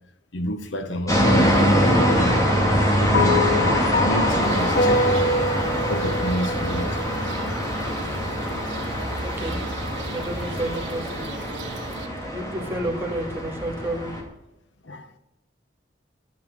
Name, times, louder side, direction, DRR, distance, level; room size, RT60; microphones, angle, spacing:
voice 1, 0.3-1.8 2.1-2.7 2.9-5.3 5.9-7.0 14.8-15.1, equal, 90° left, 1.1 m, -30 dB
sound 1, 1.1-14.2, equal, 20° left, 2.4 m, -23 dB
sound 2, 3.1-7.6, left 2 dB, 50° left, 0.7 m, -25 dB
sound 3, 4.4-12.1, right 2 dB, 85° right, 1.5 m, -38 dB
voice 2, 9.2-9.6 10.1-11.3 12.3-14.1, right 1 dB, 15° right, 2.1 m, -30 dB
12.5 x 7.2 x 7.7 m
head